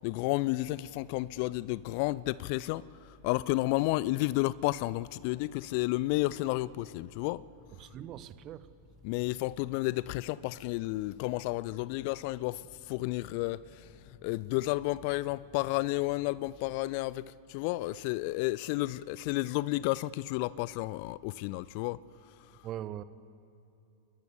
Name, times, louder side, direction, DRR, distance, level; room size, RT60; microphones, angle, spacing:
voice 1, 0.0-7.4 9.0-22.0, left 19 dB, 45° left, 0.5 m, -32 dB
sound 1, 0.6-16.8, left 3 dB, 25° left, 1.2 m, -60 dB
voice 2, 7.8-8.7 22.6-23.0, right 12 dB, 35° right, 0.9 m, -41 dB
21.5 x 19.5 x 9.8 m
figure-of-eight pair, 90°, 0 cm